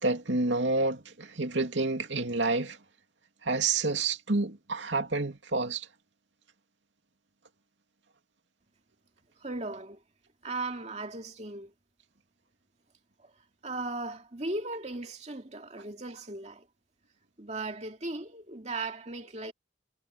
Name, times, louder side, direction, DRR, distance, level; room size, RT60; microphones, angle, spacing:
voice 1, 0.0-2.8 3.4-5.9, right 3 dB, 75° right, 2.6 m, -29 dB
voice 2, 9.4-10.0 10.4-11.7 13.2-13.3 13.6-16.7 17.4-19.5, right 2 dB, 35° right, 2.5 m, -37 dB
head